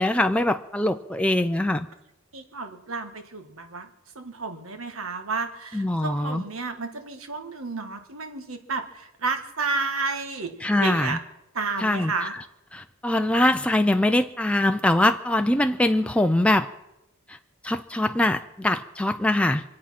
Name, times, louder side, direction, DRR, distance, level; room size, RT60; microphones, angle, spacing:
voice 1, 0.0-1.9 5.7-6.4 10.6-11.2 11.8-12.1 12.7-16.7 17.6-19.6, left 1 dB, 5° left, 6 dB, 0.4 m, -22 dB
voice 2, 2.3-3.9 4.1-10.5 10.8-11.2 11.5-12.3, right 4 dB, 90° right, 6 dB, 1.7 m, -31 dB
25.5 x 8.6 x 5.9 m, 0.87 s
head